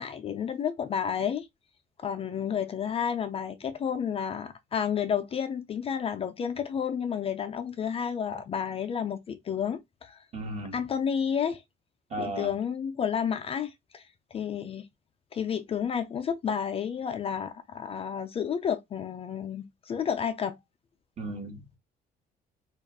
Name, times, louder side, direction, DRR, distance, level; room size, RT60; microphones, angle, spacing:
voice 1, 0.0-1.5 2.0-10.2 10.7-11.6 12.2-14.9 15.3-20.6, left 8 dB, 35° left, 0.4 m, -31 dB
voice 2, 10.3-10.8 12.1-12.5 21.2-21.6, right 1 dB, 40° right, 1.0 m, -35 dB
2.4 x 2.3 x 3.3 m
cardioid pair, 110°, 17 cm